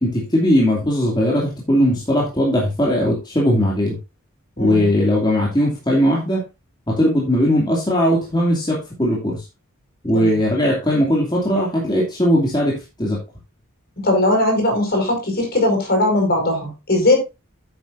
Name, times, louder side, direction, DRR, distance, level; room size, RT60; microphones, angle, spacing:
voice 1, 0.0-4.0 4.6-6.4 6.9-9.4 10.0-13.2, equal, 20° left, -3 dB, 2.5 m, -19 dB
voice 2, 4.6-4.9 10.1-10.4 14.0-17.2, left 1 dB, 45° left, 2 dB, 5.1 m, -19 dB
9.5 x 9.3 x 2.6 m, 0.25 s
head